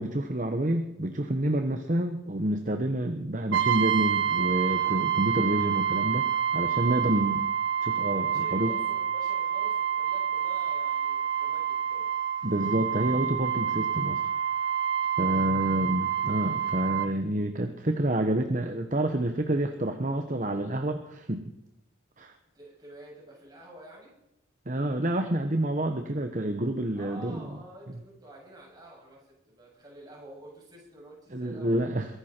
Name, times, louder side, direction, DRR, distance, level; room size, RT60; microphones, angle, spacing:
voice 1, 0.0-6.2 6.5-7.4 7.8-8.7 12.4-14.2 15.2-21.4 22.2-22.3 24.7-27.4 31.3-32.1, right 1 dB, 40° right, 5 dB, 1.1 m, -28 dB
Brass instrument, 3.5-17.1, right 9 dB, 75° right, 1.3 m, -28 dB
voice 2, 6.7-7.3 8.0-12.1 15.3-15.4 22.5-24.3 27.0-32.0, right 1 dB, 20° right, -4 dB, 7.7 m, -49 dB
23.0 x 11.5 x 4.5 m, 0.88 s
head